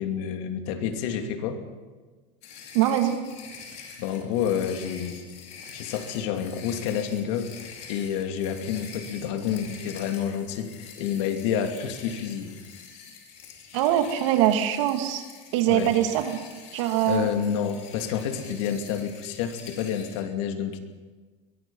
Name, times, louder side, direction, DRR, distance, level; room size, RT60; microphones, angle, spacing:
voice 1, 0.0-1.6 4.0-5.2 5.7-7.5 7.9-12.5 15.7-15.9 17.1-20.8, left 8 dB, 75° left, 5 dB, 2.7 m, -29 dB
sound 1, 2.4-20.2, left 6 dB, 45° left, 4.5 m, -45 dB
voice 2, 2.7-3.3 13.7-15.2 15.5-16.4 16.7-17.3, right 11 dB, 80° right, 6 dB, 2.5 m, -23 dB
22.5 x 21.5 x 5.6 m, 1.4 s
cardioid pair, 150°, 16 cm